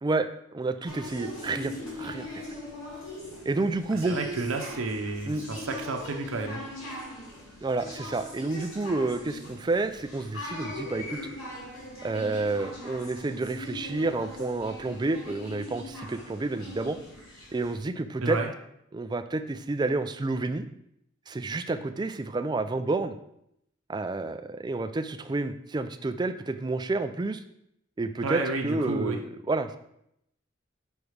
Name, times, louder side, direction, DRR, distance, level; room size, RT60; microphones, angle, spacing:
voice 1, 0.0-2.4 3.5-4.2 5.3-5.4 7.6-11.2 12.0-17.0 17.5-18.4 18.9-20.7 21.3-23.2 23.9-27.4 28.0-29.8, right 2 dB, 20° right, 9 dB, 0.3 m, -30 dB
sound 1, 0.9-17.8, equal, 70° left, 2.3 m, -40 dB
voice 2, 3.9-7.0 18.2-18.5 28.2-29.2, right 3 dB, 90° right, 3 dB, 0.8 m, -31 dB
5.3 x 4.8 x 5.0 m, 0.77 s
head